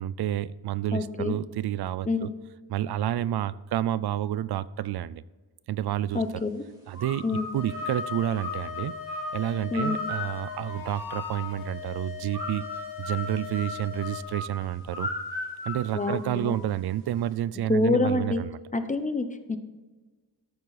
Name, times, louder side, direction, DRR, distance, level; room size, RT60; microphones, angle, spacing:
voice 1, 0.0-2.3 2.7-5.2 5.7-6.5 6.9-7.2 7.5-8.9 9.3-12.6 13.0-15.1 15.7-18.6, right 12 dB, 80° right, 0.5 m, -29 dB
voice 2, 0.9-1.4 2.1-2.4 6.1-6.6 7.2-7.5 9.7-10.1 15.9-16.5 17.7-18.4 18.7-19.6, left 3 dB, 20° left, 0.8 m, -27 dB
sound 1, 6.9-11.7 12.3-16.8, left 2 dB, 10° right, 3.1 m, -36 dB
sound 2, 7.5-14.2, left 9 dB, 65° left, 1.7 m, -41 dB
13.0 x 7.2 x 4.1 m
wide cardioid pair, 155°, 38 cm